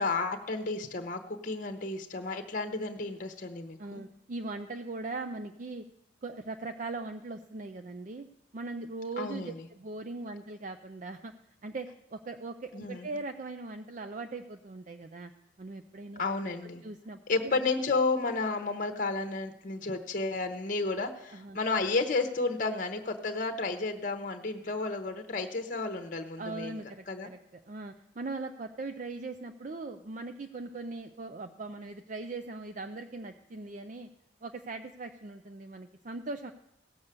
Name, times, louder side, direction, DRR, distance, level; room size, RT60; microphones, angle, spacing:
voice 1, 0.0-4.0 9.2-9.6 12.7-13.1 16.2-16.8 17.3-26.8 27.1-27.3, left 3 dB, 45° left, 7 dB, 0.9 m, -32 dB
voice 2, 3.8-5.8 6.2-8.3 8.5-11.3 11.6-15.3 15.6-16.2 16.8-17.2 21.3-21.6 26.4-34.1 34.4-36.5, right 3 dB, 40° right, 8 dB, 0.5 m, -40 dB
17.0 x 7.1 x 6.7 m, 0.84 s
head